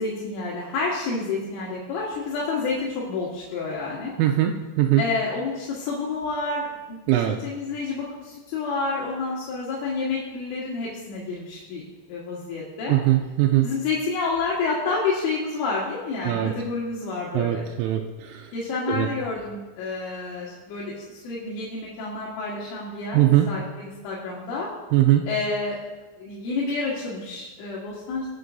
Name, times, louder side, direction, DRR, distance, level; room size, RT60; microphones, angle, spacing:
voice 1, 0.0-4.1 5.0-13.0 13.6-17.7 18.5-24.7 25.3-25.8 26.2-28.3, left 3 dB, 80° left, -5 dB, 3.9 m, -29 dB
voice 2, 4.2-5.0 7.1-7.4 12.9-13.7 16.2-16.5 17.3-18.4 18.9-19.1 23.1-23.5 24.9-25.2, right 13 dB, 85° right, 2 dB, 3.1 m, -21 dB
21.0 x 7.0 x 2.7 m, 1.2 s
omnidirectional pair, 5.6 m